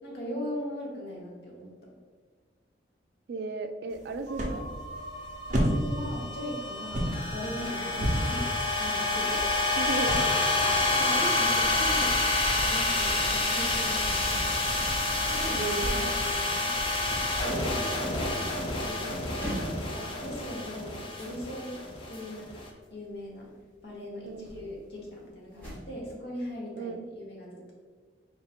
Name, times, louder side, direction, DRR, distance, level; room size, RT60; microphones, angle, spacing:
voice 1, 0.0-1.7 5.5-8.5 8.8-9.5 11.0-12.2 12.7-14.6 15.2-16.7 17.6-18.4 18.8-21.8 22.1-22.6 22.9-23.5 23.8-27.7, equal, 60° left, -4 dB, 1.2 m, -39 dB
voice 2, 3.3-4.7 7.9-8.1 9.3-9.4 9.8-10.4 15.5-16.2 17.4-17.8 24.3-24.5 26.7-27.1, right 3 dB, 60° right, 8 dB, 0.3 m, -35 dB
sound 1, 3.9-17.5, equal, 40° right, 0.8 m, -35 dB
sound 2, 4.3-22.6, left 2 dB, 25° left, 0.5 m, -29 dB
sound 3, 7.6-8.0 8.4-9.2 9.4-9.9 10.4-17.3 17.6-25.8, equal, 10° left, 1.3 m, -45 dB
3.9 x 2.6 x 4.2 m, 1.6 s
head